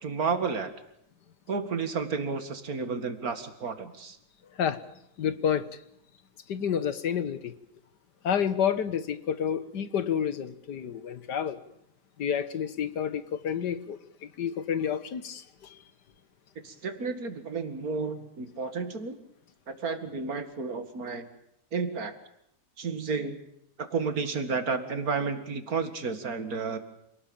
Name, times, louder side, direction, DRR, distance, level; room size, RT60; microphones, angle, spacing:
voice 1, 0.0-0.7 1.5-4.2 16.6-19.2 19.7-21.3 21.7-22.1 22.8-23.4 23.8-26.8, right 4 dB, 60° right, 9 dB, 2.5 m, -31 dB
voice 2, 5.2-5.7 6.5-7.5 8.2-11.6 12.2-15.8, left 8 dB, 85° left, 13 dB, 1.9 m, -29 dB
27.0 x 19.0 x 8.9 m, 0.76 s
omnidirectional pair, 1.8 m